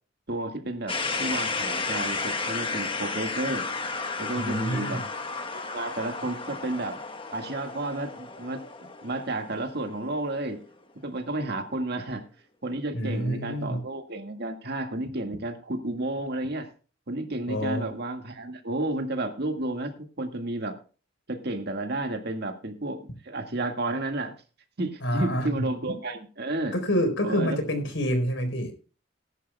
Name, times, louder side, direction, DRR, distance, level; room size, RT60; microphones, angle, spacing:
voice 1, 0.3-3.7 4.2-5.0 5.5-7.0 7.3-8.6 9.0-10.6 11.0-12.3 12.6-16.7 17.1-20.8 21.3-24.3 24.8-26.7 27.2-27.6, right 2 dB, 55° right, 5 dB, 1.9 m, -31 dB
sound 1, 0.9-10.7, left 4 dB, 25° left, 1.3 m, -33 dB
voice 2, 4.3-5.0 12.9-13.8 17.5-17.9 25.0-25.5 25.9-26.0 26.7-28.7, equal, 80° left, 7 dB, 4.1 m, -27 dB
19.0 x 11.0 x 2.3 m, 0.36 s
head